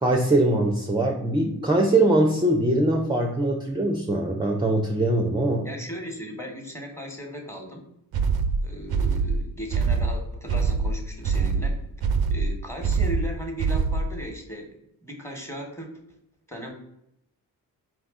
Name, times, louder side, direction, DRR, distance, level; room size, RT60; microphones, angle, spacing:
voice 1, 0.0-5.7, right 1 dB, 10° right, 2 dB, 0.6 m, -22 dB
voice 2, 5.6-7.8 8.6-11.8 12.3-14.7 15.0-15.9 16.5-16.7, equal, 5° left, 1 dB, 1.2 m, -37 dB
sound 1, 8.1-14.2, right 4 dB, 65° right, 0.5 m, -24 dB
4.6 x 2.3 x 3.6 m, 0.78 s
cardioid pair, 55°, 40 cm